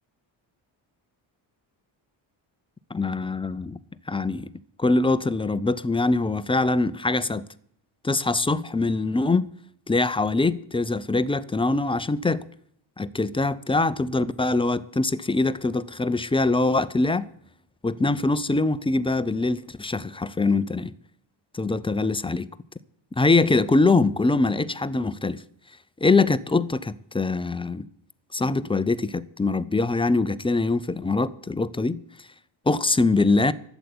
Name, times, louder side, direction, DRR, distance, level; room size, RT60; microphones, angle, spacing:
voice 1, 2.9-3.8 4.1-4.5 4.8-7.4 8.0-9.5 9.9-12.4 13.0-17.3 17.8-20.9 21.5-22.5 23.2-25.4 26.0-27.9 28.3-32.0 32.7-33.5, left 3 dB, 10° left, 0.4 m, -23 dB
12.0 x 8.1 x 9.6 m
cardioid pair, 120°, 47 cm